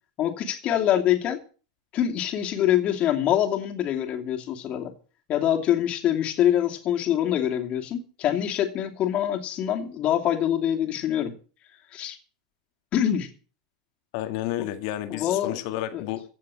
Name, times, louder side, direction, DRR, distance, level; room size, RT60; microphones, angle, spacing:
voice 1, 0.2-1.4 1.9-4.9 5.3-11.3 11.9-12.2 12.9-13.3 14.6-14.7 15.1-15.6 15.9-16.0, left 11 dB, 40° left, 2.9 m, -25 dB
voice 2, 14.1-16.2, left 13 dB, 55° left, 2.0 m, -31 dB
16.0 x 7.5 x 7.5 m
hypercardioid pair, 100°, 3 cm